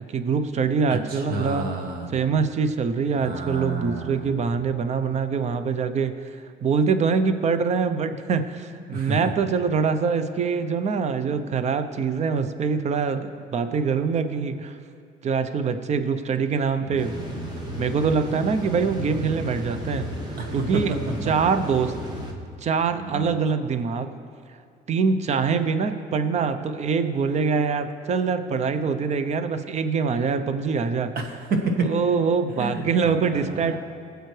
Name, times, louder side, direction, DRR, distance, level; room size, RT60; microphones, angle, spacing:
voice 1, 0.0-1.7 2.1-6.1 6.6-14.8 15.2-17.2 17.8-20.1 20.5-20.9 21.2-21.9 22.6-24.1 24.9-31.1 31.8-33.8, right 5 dB, 40° right, 10 dB, 0.7 m, -24 dB
voice 2, 0.9-2.1 3.2-4.3 8.9-9.2 16.8-17.5 20.4-20.6 23.0-23.3 31.1-31.9 32.6-33.8, right 3 dB, 60° right, 3 dB, 1.6 m, -30 dB
sound 1, 17.0-22.3, equal, 25° right, 1.8 m, -34 dB
20.0 x 8.0 x 3.3 m, 2.3 s
cardioid pair, 110°, 17 cm